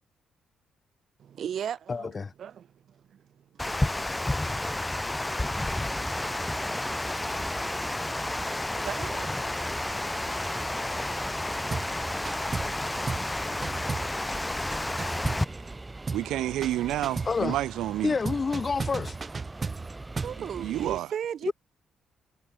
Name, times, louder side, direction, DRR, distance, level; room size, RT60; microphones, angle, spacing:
voice 1, 1.2-2.1 2.4-3.3 20.2-21.5, right 9 dB, 60° right, 1.4 m, -39 dB
voice 2, 1.9-2.3 17.3-17.6 18.0-19.2 21.5-21.6, left 4 dB, 35° left, 0.5 m, -28 dB
Water, 3.6-15.4, left 2 dB, 10° left, 1.2 m, -31 dB
sound 1, 5.4-21.0, right 2 dB, 15° right, 1.1 m, -42 dB
sound 2, 11.7-12.0 12.2-12.8 13.1-13.3 13.6-15.8 16.1-16.3 16.6-17.4 18.2-20.4, right 4 dB, 30° right, 0.6 m, -35 dB
voice 3, 16.1-18.1 20.6-21.1, right 14 dB, 85° right, 0.6 m, -29 dB
cardioid pair, 90°, 0 cm